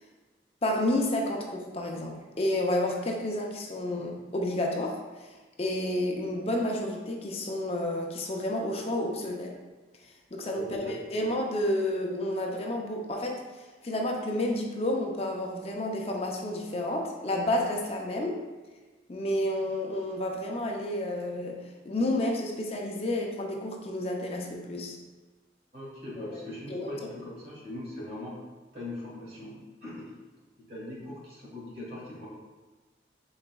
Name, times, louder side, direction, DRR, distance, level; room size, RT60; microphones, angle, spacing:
voice 1, 0.6-9.5 10.0-18.4 19.1-25.0 26.2-26.4 26.7-26.9, left 1 dB, 35° left, 1 dB, 0.5 m, -30 dB
voice 2, 10.5-10.9 25.7-28.4 28.7-30.1 30.7-32.3, left 1 dB, 60° right, -7 dB, 1.5 m, -40 dB
4.4 x 3.9 x 2.2 m, 1.3 s
head